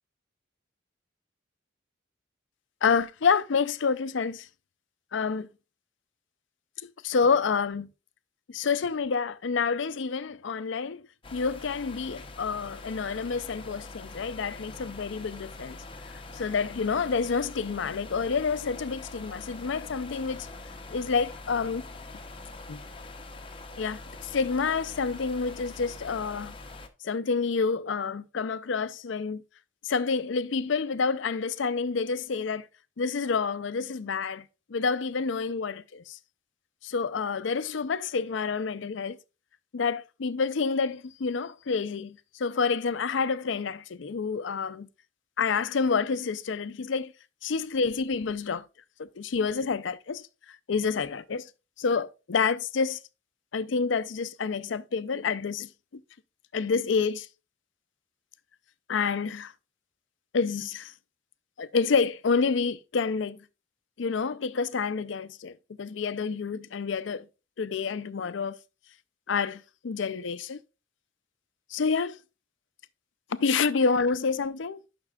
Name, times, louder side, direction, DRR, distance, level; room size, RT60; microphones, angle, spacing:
voice 1, 2.8-4.5 5.1-5.5 7.0-7.9 8.5-11.1 11.3-15.8 16.3-20.5 20.9-21.8 22.7-22.8 23.8-26.6 27.0-29.4 29.8-32.7 33.0-36.2 36.8-39.2 39.7-44.9 45.4-47.1 47.4-48.6 49.0-51.5 51.8-53.0 53.5-55.7 56.5-57.3 58.9-59.5 60.3-60.9 61.6-63.4 64.0-67.3 67.6-68.6 69.3-70.6 71.7-72.2 73.3-74.8, left 5 dB, 65° left, 0.5 m, -28 dB
sound 1, 11.2-26.9, left 2 dB, 25° left, 0.8 m, -44 dB
10.5 x 5.9 x 2.3 m
head